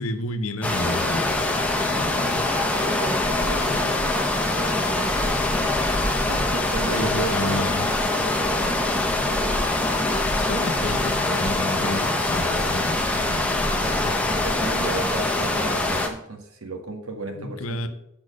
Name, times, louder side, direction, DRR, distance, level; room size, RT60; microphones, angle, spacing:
voice 1, 0.0-2.5 6.9-7.9 10.4-14.2 17.3-17.9, left 1 dB, 70° left, 8 dB, 0.9 m, -31 dB
sound 1, 0.6-16.1, left 2 dB, 5° left, 0.9 m, -24 dB
voice 2, 2.7-5.6 6.3-7.7 8.1-10.0 14.2-17.9, right 3 dB, 75° right, 4 dB, 1.6 m, -35 dB
sound 2, 3.2-15.0, equal, 45° right, 1.6 m, -35 dB
6.4 x 6.1 x 6.4 m, 0.82 s
head